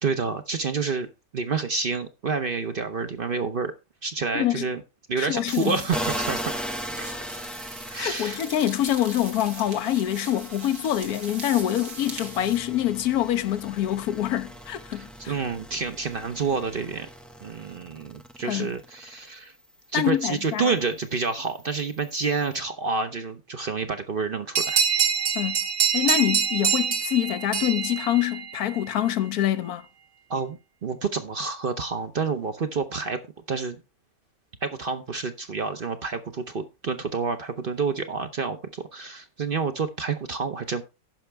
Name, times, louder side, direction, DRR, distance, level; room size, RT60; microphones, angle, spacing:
voice 1, 0.0-3.7 4.0-4.8 5.1-6.7 7.0-7.1 7.9-8.4 14.9-17.1 17.4-19.5 19.9-24.8 30.3-33.2 33.5-33.8 34.6-40.8, right 4 dB, 45° right, 0.8 m, -29 dB
voice 2, 4.3-4.7 5.2-5.8 8.0-15.3 18.5-18.7 19.9-20.7 25.3-25.6 25.9-29.8, left 12 dB, 80° left, 1.2 m, -25 dB
sound 1, 5.5-12.6, right 4 dB, 85° right, 2.5 m, -41 dB
sound 2, 5.9-19.3 19.7-22.6, equal, ahead, 0.3 m, -39 dB
sound 3, 24.6-28.8, right 6 dB, 65° right, 1.4 m, -25 dB
15.0 x 5.7 x 3.3 m
omnidirectional pair, 1.6 m